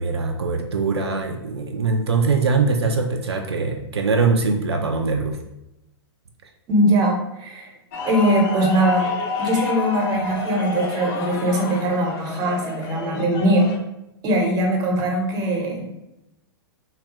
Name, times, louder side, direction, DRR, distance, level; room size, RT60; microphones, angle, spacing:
voice 1, 0.0-5.4, right 4 dB, 90° right, 3 dB, 0.4 m, -22 dB
voice 2, 6.7-7.7 8.0-9.1 9.4-13.7 14.2-16.0, right 1 dB, 30° right, 1 dB, 0.9 m, -21 dB
sound 1, 7.9-13.8, left 3 dB, 40° left, 0.6 m, -29 dB
3.1 x 2.3 x 2.9 m, 0.88 s
hypercardioid pair, 110°, 13 cm